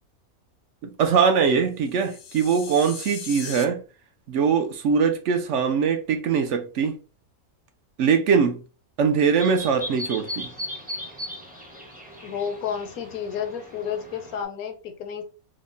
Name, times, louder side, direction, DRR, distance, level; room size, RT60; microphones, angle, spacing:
voice 1, 0.8-3.8 4.3-6.9 8.0-8.6 9.0-10.5, right 6 dB, 65° right, 0.8 m, -22 dB
sound 1, 1.8-3.7, left 7 dB, 60° left, 0.7 m, -38 dB
sound 2, 9.4-14.4, equal, 10° right, 0.6 m, -37 dB
voice 2, 12.2-15.2, left 7 dB, 75° left, 1.1 m, -31 dB
3.5 x 2.1 x 3.8 m
omnidirectional pair, 1.5 m